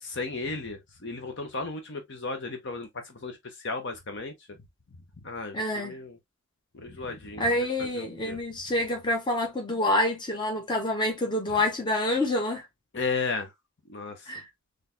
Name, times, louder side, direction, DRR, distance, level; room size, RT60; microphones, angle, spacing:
voice 1, 0.0-4.6 5.2-6.2 6.7-7.5 7.8-8.4 11.5-11.6 12.9-13.5 13.9-14.3, left 3 dB, 55° left, 0.8 m, -35 dB
voice 2, 5.5-6.0 7.4-12.7 14.3-14.4, left 1 dB, 20° left, 1.1 m, -27 dB
3.9 x 3.3 x 2.6 m
head